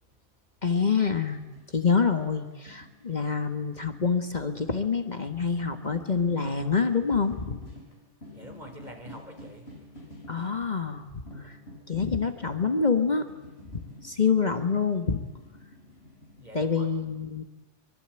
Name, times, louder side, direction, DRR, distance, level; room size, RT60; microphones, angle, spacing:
voice 1, 0.6-1.4 1.7-7.6 10.3-11.1 11.4-11.6 11.9-13.2 14.0-15.2 16.5-17.4, left 5 dB, 40° left, 8 dB, 1.5 m, -26 dB
sound 1, 1.4-1.9 2.2-5.0 5.2-10.7 11.3-16.9, left 1 dB, 65° left, 5.6 m, -49 dB
voice 2, 8.3-9.7 16.4-16.9, right 1 dB, 40° right, 3 dB, 4.4 m, -46 dB
24.0 x 23.5 x 8.9 m, 1.1 s
omnidirectional pair, 1.1 m